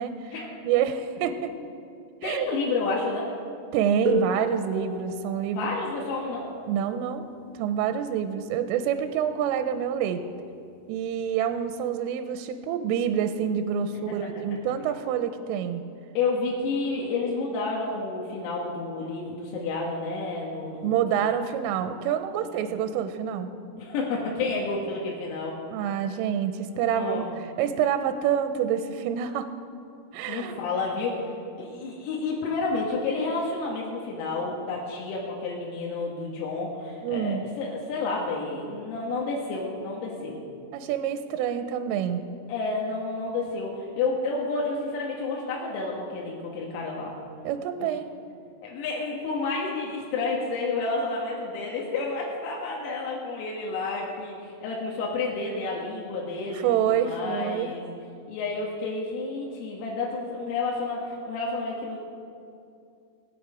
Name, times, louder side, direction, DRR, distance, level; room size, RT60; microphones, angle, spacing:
voice 1, 0.0-0.3 0.6-1.5 2.2-2.6 3.7-5.7 6.7-7.3 7.6-10.2 10.9-15.8 20.8-23.5 25.7-27.2 27.6-29.5 30.1-30.6 37.0-37.4 40.7-42.2 47.4-48.1 56.6-57.7, right 8 dB, 85° right, 8 dB, 3.1 m, -27 dB
voice 2, 2.2-3.3 5.6-6.5 13.9-14.0 16.2-21.0 22.5-22.7 23.8-25.6 26.9-27.3 30.3-31.3 31.6-40.4 42.5-47.1 48.6-57.8 58.3-62.0, left 3 dB, 90° left, -3 dB, 4.4 m, -30 dB
sound 1, 4.0-9.5 10.5-10.6 11.5-11.7, right 2 dB, 55° right, 1.1 m, -34 dB
24.5 x 8.7 x 4.9 m, 2.5 s
omnidirectional pair, 6.0 m